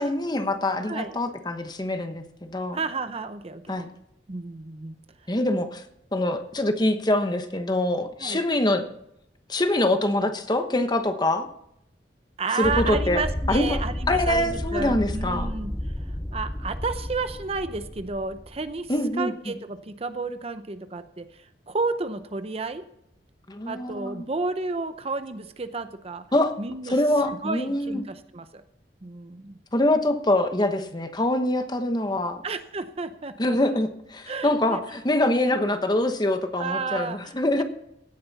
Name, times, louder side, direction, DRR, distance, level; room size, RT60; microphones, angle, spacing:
voice 1, 0.0-2.8 3.7-3.9 5.3-5.8 6.1-8.9 9.5-11.5 12.5-13.2 13.5-13.8 14.1-15.5 18.9-19.3 23.5-24.3 26.3-26.6 26.8-28.0 29.7-32.4 33.4-37.6, left 1 dB, 25° left, 7 dB, 1.1 m, -24 dB
voice 2, 0.8-1.2 2.7-3.8 4.3-4.9 8.2-8.4 12.4-15.7 16.1-22.8 23.7-26.2 26.6-26.9 27.2-28.6 29.0-29.6 32.4-33.8 34.3-34.8 35.5-35.7 36.5-37.6, right 3 dB, 35° right, 10 dB, 0.7 m, -32 dB
sound 1, 12.6-18.8, left 1 dB, 5° left, 0.3 m, -31 dB
16.5 x 9.4 x 4.1 m, 0.79 s
head